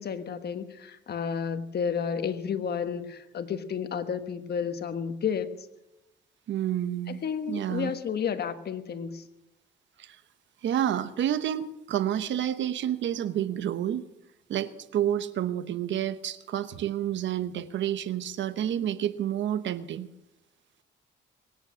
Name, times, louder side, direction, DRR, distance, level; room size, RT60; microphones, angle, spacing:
voice 1, 0.0-5.7 7.1-9.3, left 7 dB, 55° left, 10 dB, 1.3 m, -31 dB
voice 2, 6.5-7.2 7.5-7.9 10.0-10.2 10.6-14.0 14.5-20.1, right 10 dB, 70° right, 13 dB, 1.0 m, -29 dB
22.5 x 9.6 x 6.3 m, 0.94 s
cardioid pair, 90°, 20 cm